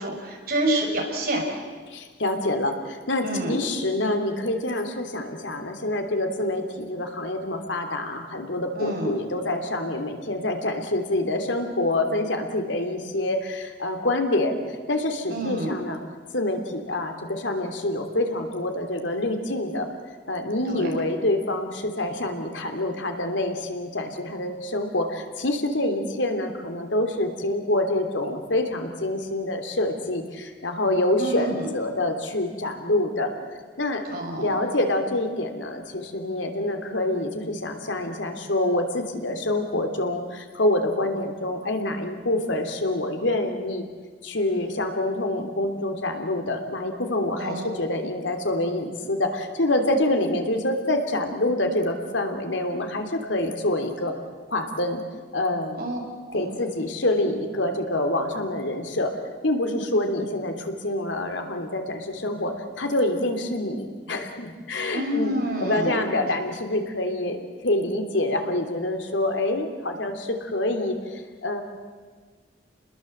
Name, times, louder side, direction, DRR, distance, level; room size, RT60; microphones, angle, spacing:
voice 1, 0.0-1.4 3.2-3.6 8.7-9.1 15.3-15.7 20.7-20.9 31.2-31.7 34.1-34.5 47.4-47.7 55.8-56.0 56.3-56.5 64.9-65.9, right 1 dB, 50° right, 1 dB, 6.4 m, -28 dB
voice 2, 1.9-14.6 14.9-16.0 16.3-19.9 20.3-33.3 33.8-34.0 34.4-43.8 44.2-54.1 54.5-55.0 55.3-55.8 56.3-59.1 59.4-67.4 67.6-71.6, left 1 dB, 85° left, 5 dB, 3.2 m, -26 dB
30.0 x 20.5 x 8.0 m, 1.5 s
head